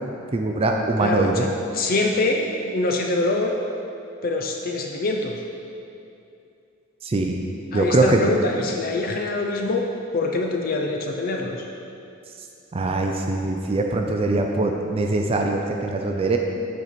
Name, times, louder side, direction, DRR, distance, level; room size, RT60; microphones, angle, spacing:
voice 1, 0.3-1.4 7.0-7.4 7.7-8.3 12.7-16.4, right 2 dB, 30° right, 2 dB, 0.4 m, -22 dB
voice 2, 1.0-3.5 4.2-5.4 7.7-9.9 10.1-11.7, left 2 dB, 45° left, 2 dB, 0.4 m, -24 dB
8.2 x 4.5 x 4.1 m, 2.6 s
head